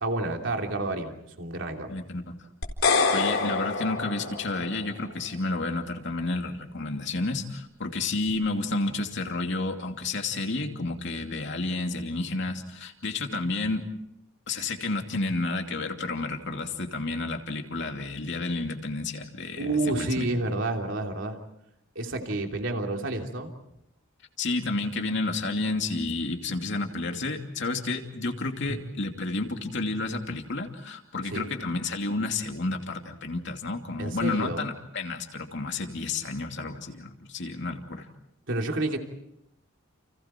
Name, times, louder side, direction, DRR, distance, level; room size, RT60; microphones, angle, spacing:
voice 1, 0.0-1.9 19.6-21.4 21.9-23.5 28.7-28.8 31.2-31.5 34.0-34.6 38.5-39.0, right 2 dB, 65° right, 2 dB, 3.1 m, -29 dB
voice 2, 1.9-2.3 3.1-13.8 14.5-20.3 24.4-38.1, left 3 dB, 60° left, 4 dB, 2.7 m, -31 dB
sound 1, 2.6-4.9, left 4 dB, 85° left, 4.0 m, -26 dB
30.0 x 30.0 x 4.5 m, 0.80 s
head